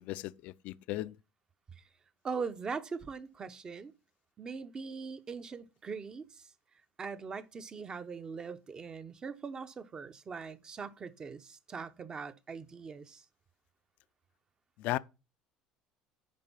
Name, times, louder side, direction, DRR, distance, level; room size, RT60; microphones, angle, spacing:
voice 1, 0.1-1.1 14.8-15.0, left 17 dB, 70° left, 0.5 m, -35 dB
voice 2, 2.2-3.9 4.4-6.5 7.0-13.2, right 5 dB, 30° right, 1.0 m, -41 dB
10.5 x 4.6 x 5.7 m
supercardioid pair, 115°, 3 cm